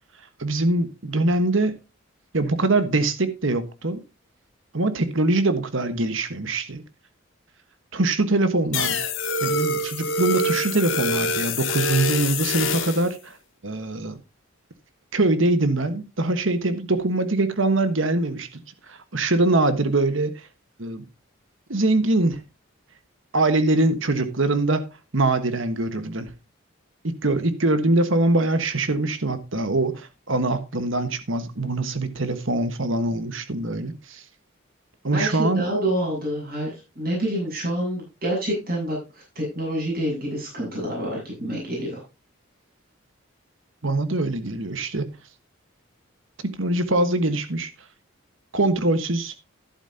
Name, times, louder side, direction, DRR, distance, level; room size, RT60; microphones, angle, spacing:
voice 1, 0.4-1.7 2.3-4.0 4.7-6.8 7.9-9.0 9.4-13.4 13.6-14.2 15.1-18.6 18.9-20.3 20.8-21.0 21.7-22.4 23.3-24.9 25.1-26.3 27.0-34.2 35.0-35.6 43.8-45.1 46.4-47.7 48.5-49.3, right 2 dB, 70° right, 1.3 m, -23 dB
sound 1, 8.7-13.1, left 2 dB, 70° left, 1.7 m, -25 dB
voice 2, 35.1-42.0, right 1 dB, 45° right, 7.4 m, -27 dB
11.5 x 11.0 x 2.8 m
head